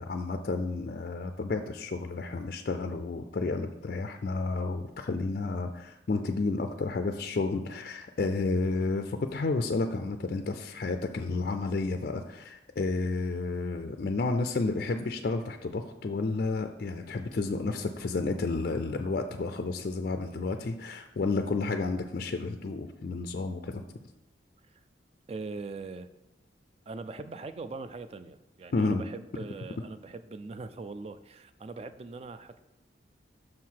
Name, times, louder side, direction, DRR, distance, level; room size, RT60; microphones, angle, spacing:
voice 1, 0.0-23.8 28.7-29.0, left 3 dB, 50° left, 6 dB, 0.4 m, -31 dB
voice 2, 25.3-26.1 26.9-32.6, right 3 dB, 35° right, 11 dB, 0.4 m, -41 dB
6.2 x 4.7 x 5.7 m, 0.92 s
head